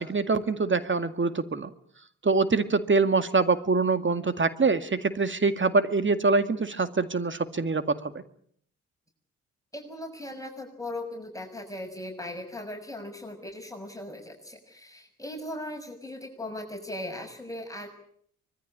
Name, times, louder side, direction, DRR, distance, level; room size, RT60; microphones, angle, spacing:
voice 1, 0.0-1.7 2.2-8.1, right 4 dB, 30° right, 11 dB, 2.0 m, -24 dB
voice 2, 9.7-17.9, left 1 dB, 10° left, 2 dB, 6.7 m, -38 dB
25.0 x 21.5 x 8.7 m, 0.65 s
hypercardioid pair, 40°, 37 cm